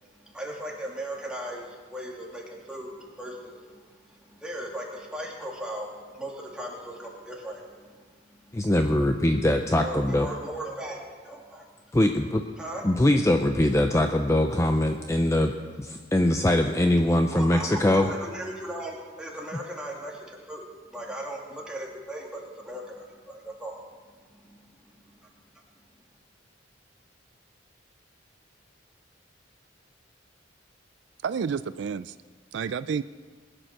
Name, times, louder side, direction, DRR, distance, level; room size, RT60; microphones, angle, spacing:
voice 1, 0.2-8.0 9.8-11.0 11.2-11.6 12.6-12.8 17.3-23.8 24.4-24.6, right 1 dB, 5° right, -2 dB, 2.5 m, -37 dB
voice 2, 8.5-10.3 11.9-12.4 12.8-15.5 15.8-18.1, left 1 dB, 15° left, 5 dB, 0.5 m, -22 dB
voice 3, 31.2-32.2 32.5-33.0, right 6 dB, 65° right, 14 dB, 0.4 m, -30 dB
20.5 x 9.0 x 6.6 m, 1.6 s
head